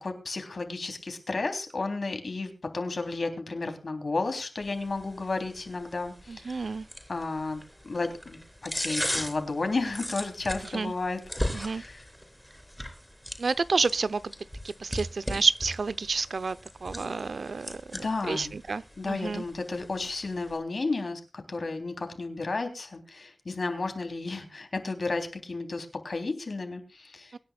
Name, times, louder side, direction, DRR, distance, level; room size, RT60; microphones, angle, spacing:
voice 1, 0.0-6.7 7.1-12.0 17.9-18.5 19.0-21.2 21.5-27.3, left 3 dB, 65° left, 3.4 m, -33 dB
sound 1, 4.6-20.6, equal, ahead, 4.1 m, -39 dB
voice 2, 6.3-6.9 10.7-10.9 11.5-11.8 13.4-14.3 14.6-19.4 27.3-27.4, right 4 dB, 80° right, 0.7 m, -30 dB
24.5 x 10.5 x 2.4 m
wide cardioid pair, 75°, 0 cm